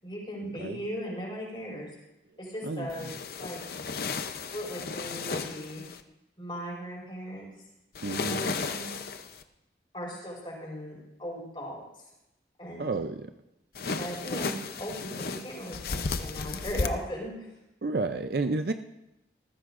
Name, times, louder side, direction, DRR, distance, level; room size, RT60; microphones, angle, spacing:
voice 1, 0.0-1.9 2.4-3.6 4.5-5.8 6.4-7.5 8.1-8.9 9.9-11.8 12.6-12.9 14.0-17.5, equal, 30° left, -4 dB, 5.0 m, -38 dB
voice 2, 2.6-3.1 8.0-8.4 12.8-13.3 17.8-18.7, right 3 dB, 60° right, 8 dB, 0.5 m, -31 dB
sound 1, 2.9-6.0 7.9-9.4 13.7-16.9, left 4 dB, 60° left, 0.7 m, -34 dB
19.0 x 14.5 x 2.5 m, 0.90 s
head